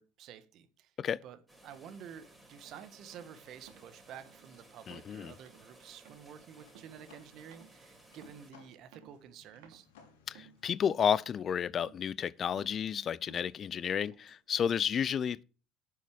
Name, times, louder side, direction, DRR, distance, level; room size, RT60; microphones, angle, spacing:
voice 1, 0.0-0.9 1.2-9.9, right 8 dB, 55° right, 1.6 m, -51 dB
sound 1, 1.5-8.5, right 2 dB, 10° right, 5.1 m, -59 dB
sound 2, 2.6-2.8 3.1-3.4 3.7-4.0 4.3-4.5 4.8-5.2 5.5-5.7 6.1-6.4 6.7-7.1 7.5-7.8 8.2-8.5 8.9-9.4 9.6-9.9 10.3-10.7 11.1-11.5 11.8-12.1 12.3-12.8 13.3-13.6 14.0-14.4, right 9 dB, 70° right, 2.8 m, -59 dB
voice 2, 4.9-5.3 10.3-15.4, left 8 dB, 40° left, 0.4 m, -31 dB
sound 3, 6.2-11.7, left 6 dB, 75° left, 2.6 m, -64 dB
10.0 x 6.9 x 6.2 m
hypercardioid pair, 65°, 0 cm